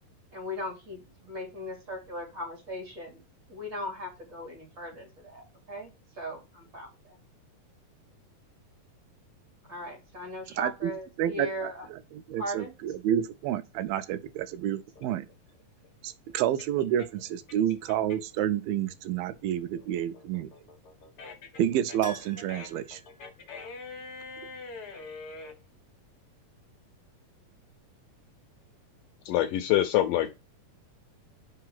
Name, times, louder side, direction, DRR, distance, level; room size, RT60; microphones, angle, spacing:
voice 1, 0.3-3.2 3.5-7.2 9.7-11.9 12.4-12.7, left 1 dB, 35° right, 3.6 m, -38 dB
voice 2, 10.6-10.9 11.2-15.3 16.0-20.5 21.6-23.0, right 11 dB, 85° right, 2.3 m, -29 dB
sound 1, 15.0-18.4 18.8-25.5, left 3 dB, 50° left, 1.9 m, -45 dB
Keyboard (musical), 22.0-24.1 24.3-24.4 27.1-27.2 27.4-27.5, left 1 dB, 15° right, 2.3 m, -47 dB
voice 3, 29.3-30.3, left 13 dB, 80° left, 2.1 m, -24 dB
5.5 x 4.6 x 5.7 m
omnidirectional pair, 4.2 m